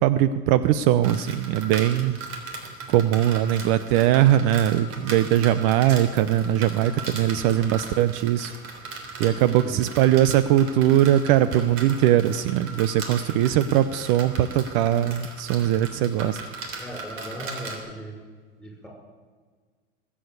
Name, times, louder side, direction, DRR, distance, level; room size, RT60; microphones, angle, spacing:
voice 1, 0.0-2.2 2.9-8.5 9.2-16.4, right 12 dB, 60° right, 14 dB, 0.8 m, -21 dB
sound 1, 1.0-17.8, right 3 dB, 45° right, 3.5 m, -38 dB
voice 2, 16.8-18.2 18.6-18.9, right 1 dB, ahead, 0 dB, 6.3 m, -37 dB
20.5 x 8.7 x 8.1 m, 1.5 s
supercardioid pair, 115°, 30 cm